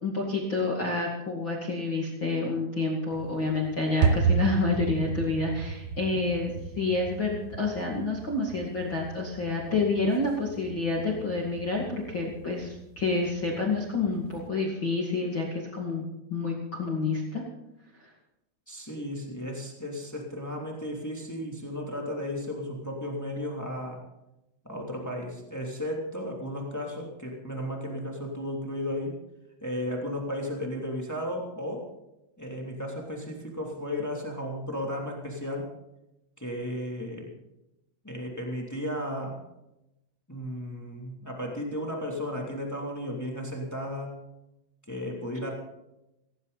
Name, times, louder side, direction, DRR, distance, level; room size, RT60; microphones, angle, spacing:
voice 1, 0.0-16.0 16.3-17.4, left 3 dB, 50° left, -2 dB, 1.4 m, -29 dB
sound 1, 3.1-14.5, right 6 dB, 75° right, 3.4 m, -33 dB
voice 2, 18.7-24.0 24.6-29.2 29.6-31.8 32.4-35.7 36.4-37.3 38.0-39.4 40.3-44.2 44.9-45.5, left 1 dB, 10° left, 0 dB, 0.8 m, -34 dB
17.5 x 17.5 x 4.1 m, 0.90 s
omnidirectional pair, 6.0 m